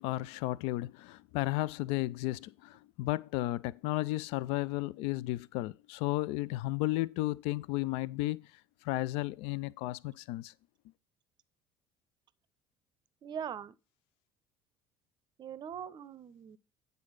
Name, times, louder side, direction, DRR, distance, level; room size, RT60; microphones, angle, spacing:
voice 1, 0.0-8.4 8.8-10.5, left 18 dB, 55° left, 0.4 m, -33 dB
voice 2, 13.2-13.7 15.4-16.6, right 8 dB, 35° right, 0.6 m, -41 dB
9.6 x 4.0 x 6.4 m
figure-of-eight pair, 60°, 12 cm